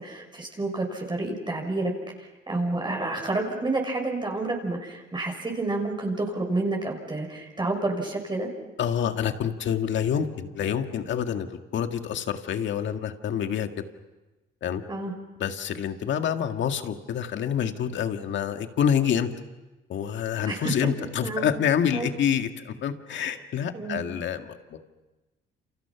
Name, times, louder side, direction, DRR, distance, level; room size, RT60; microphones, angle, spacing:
voice 1, 0.0-1.9 2.2-8.5 14.9-15.1 20.4-20.7 21.2-21.5 21.9-22.1 23.7-24.0, right 2 dB, 25° right, 1 dB, 5.9 m, -29 dB
voice 2, 8.8-13.8 14.6-14.8 15.4-19.3 19.9-24.8, left 8 dB, 70° left, 6 dB, 1.9 m, -27 dB
29.0 x 29.0 x 6.0 m, 1.1 s
cardioid pair, 90°, 20 cm